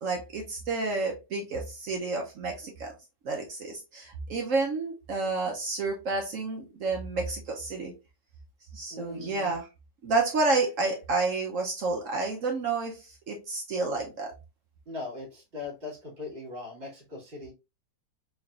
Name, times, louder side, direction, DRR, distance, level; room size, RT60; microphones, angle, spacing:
voice 1, 0.0-2.9 3.2-7.9 8.7-9.7 10.0-14.3, right 3 dB, 60° right, 1 dB, 0.9 m, -30 dB
voice 2, 8.9-9.5 14.9-17.5, left 3 dB, 35° right, -3 dB, 2.5 m, -40 dB
4.1 x 3.3 x 2.4 m, 0.26 s
omnidirectional pair, 1.9 m